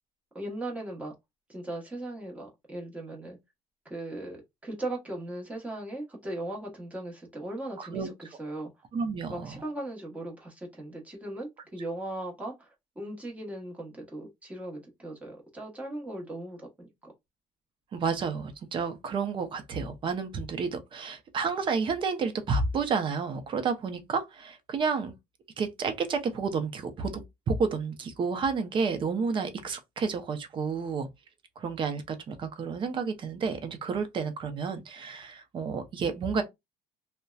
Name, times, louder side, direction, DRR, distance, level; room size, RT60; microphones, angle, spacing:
voice 1, 0.3-1.1 1.5-3.4 3.8-8.7 9.3-17.1, right 1 dB, 10° right, 1.0 m, -38 dB
voice 2, 7.8-8.1 8.9-9.6 17.9-25.1 25.6-31.1 31.6-36.4, right 5 dB, 40° right, 0.6 m, -30 dB
2.6 x 2.1 x 2.3 m
cardioid pair, 120°, 13 cm